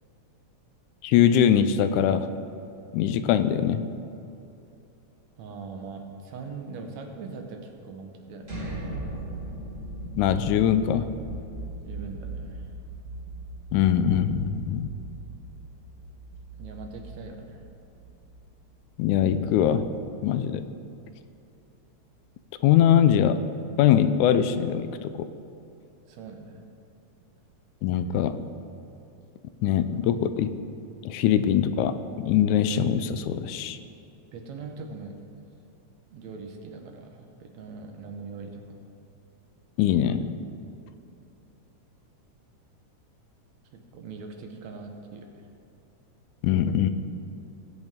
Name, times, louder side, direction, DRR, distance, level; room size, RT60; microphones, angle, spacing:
voice 1, 1.0-2.3 2.9-3.8 10.2-11.1 13.7-14.9 19.0-19.9 20.2-20.6 22.6-23.4 23.8-25.3 27.8-28.4 29.6-30.5 31.1-33.8 39.8-40.3 46.4-46.9, left 9 dB, 80° left, 11 dB, 1.9 m, -22 dB
voice 2, 5.4-8.6 11.8-12.7 16.6-17.7 26.1-26.6 34.3-35.2 36.1-38.8 43.7-45.4, right 4 dB, 70° right, 3 dB, 2.2 m, -41 dB
sound 1, 8.4-20.3, right 2 dB, 25° right, 2.5 m, -39 dB
19.0 x 8.0 x 3.6 m, 2.7 s
omnidirectional pair, 3.6 m